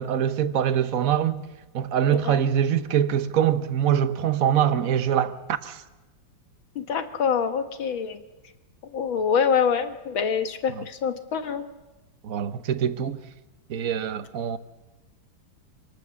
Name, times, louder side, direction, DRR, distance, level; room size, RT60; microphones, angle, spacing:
voice 1, 0.0-1.4 1.7-5.8 10.7-10.8 12.2-13.2 13.7-14.6, right 9 dB, 55° right, 1.2 m, -24 dB
voice 2, 6.8-8.2 8.9-11.6, left 6 dB, 90° left, 2.3 m, -25 dB
27.0 x 18.5 x 7.1 m
omnidirectional pair, 2.1 m